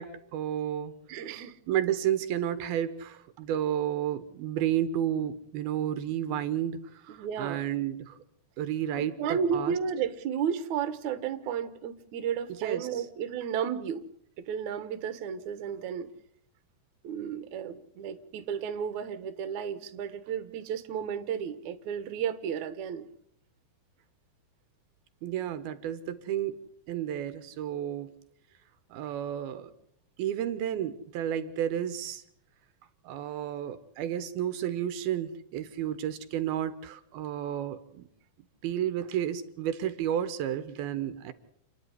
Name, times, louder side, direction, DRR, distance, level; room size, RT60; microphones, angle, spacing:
voice 1, 0.0-0.9 1.7-8.2 8.6-9.8 12.5-13.1 25.2-26.6 26.9-28.2 28.9-29.7 30.2-32.2 33.0-38.1 38.6-41.3, right 10 dB, 80° right, 12 dB, 3.0 m, -32 dB
voice 2, 1.1-1.6 7.1-7.6 9.0-14.1 14.5-16.1 17.0-23.1, right 7 dB, 60° right, 10 dB, 2.4 m, -33 dB
29.0 x 10.5 x 9.9 m, 0.70 s
omnidirectional pair, 4.4 m